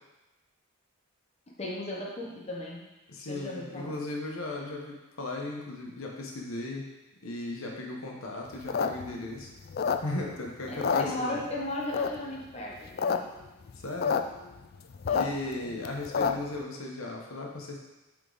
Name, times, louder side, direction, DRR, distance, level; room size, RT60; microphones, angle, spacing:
voice 1, 1.6-2.8 3.3-4.0 10.7-13.3 15.0-15.3, left 1 dB, 30° left, -3 dB, 0.8 m, -36 dB
voice 2, 3.1-6.9 7.2-9.5 10.0-11.4 13.8-14.2 15.0-17.8, left 2 dB, 75° left, 0 dB, 1.1 m, -36 dB
sound 1, 8.5-10.4 10.7-11.6 11.9-12.4 12.8-13.2 13.4-13.5 13.7-14.2 14.6-16.6, left 6 dB, 45° left, 0.3 m, -28 dB
8.0 x 3.7 x 4.0 m, 1.0 s
head